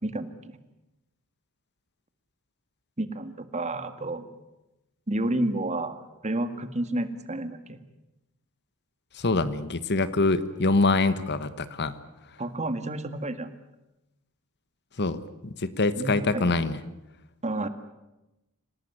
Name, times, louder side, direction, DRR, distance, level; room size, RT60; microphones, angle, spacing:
voice 1, 3.0-4.3 5.1-6.0 6.2-7.8 12.4-13.5 16.0-16.4 17.4-17.7, right 1 dB, 30° right, 10 dB, 2.0 m, -30 dB
voice 2, 9.1-12.0 15.0-16.8, left 3 dB, 50° left, 14 dB, 1.4 m, -25 dB
27.0 x 18.5 x 9.8 m, 0.97 s
head